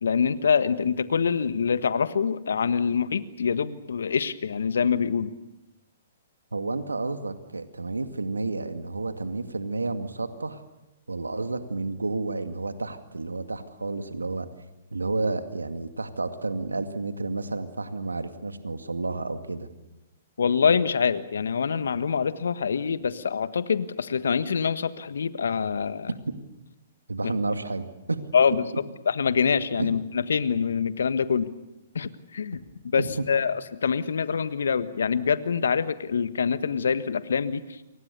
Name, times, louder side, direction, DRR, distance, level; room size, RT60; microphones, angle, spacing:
voice 1, 0.0-5.3 20.4-26.1 27.2-27.3 28.3-28.6 29.0-31.5 31.9-33.5 33.8-37.8, left 6 dB, 70° left, 13 dB, 1.5 m, -25 dB
voice 2, 6.5-10.6 11.1-14.5 14.9-19.7 26.3-26.4 27.1-28.3 29.8-29.9 32.9-33.1, right 3 dB, 85° right, 9 dB, 2.3 m, -31 dB
28.5 x 24.0 x 6.9 m, 0.96 s
figure-of-eight pair, 120°, 0 cm